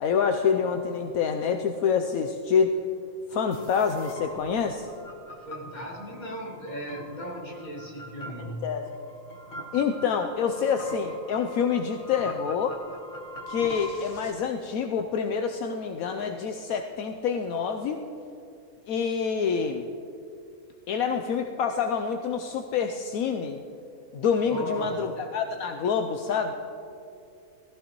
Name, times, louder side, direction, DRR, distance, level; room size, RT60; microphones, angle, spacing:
voice 1, 0.0-2.7 3.3-4.9 8.4-8.8 9.7-12.8 13.5-18.0 18.9-19.9 20.9-23.6 24.1-26.5, left 6 dB, 75° left, 5 dB, 1.1 m, -27 dB
sound 1, 3.5-14.3, left 1 dB, 45° left, 1.3 m, -42 dB
voice 2, 5.4-8.7 24.4-25.0, equal, 30° left, -3 dB, 2.4 m, -37 dB
18.5 x 14.0 x 3.0 m, 2.7 s
omnidirectional pair, 1.6 m